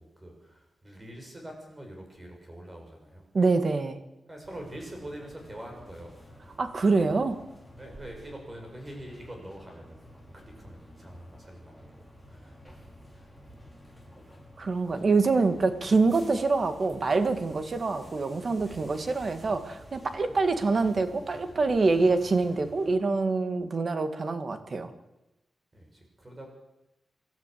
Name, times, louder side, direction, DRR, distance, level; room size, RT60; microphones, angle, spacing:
voice 1, 0.0-3.2 4.3-6.2 7.8-13.6 15.9-16.1 18.6-18.9 20.2-20.4 25.7-26.5, right 1 dB, 20° right, 2 dB, 6.8 m, -45 dB
voice 2, 3.3-4.0 6.6-7.4 14.6-24.9, right 3 dB, 45° right, 8 dB, 2.0 m, -25 dB
sound 1, 4.5-23.0, equal, ahead, 5.7 m, -51 dB
26.0 x 12.5 x 8.6 m, 0.95 s
wide cardioid pair, 130°, 0 cm